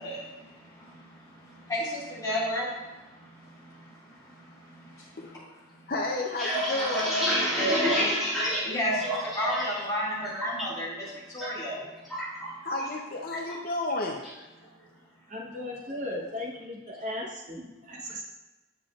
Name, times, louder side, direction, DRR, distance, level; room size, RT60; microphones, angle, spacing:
voice 1, 2.2-2.6 7.6-8.0 8.7-10.9 11.3-11.8, equal, 20° left, -8 dB, 2.2 m, -30 dB
voice 2, 5.9-7.2 12.6-14.2, left 2 dB, 50° left, 1 dB, 0.6 m, -31 dB
sound 1, 6.1-9.8 10.1-10.6 11.0-11.5 11.7-13.0 13.3-13.6 13.9-14.4, equal, ahead, 2.3 m, -29 dB
voice 3, 15.3-18.3, left 1 dB, 40° right, 0 dB, 0.9 m, -36 dB
8.2 x 7.2 x 2.4 m, 1.1 s
head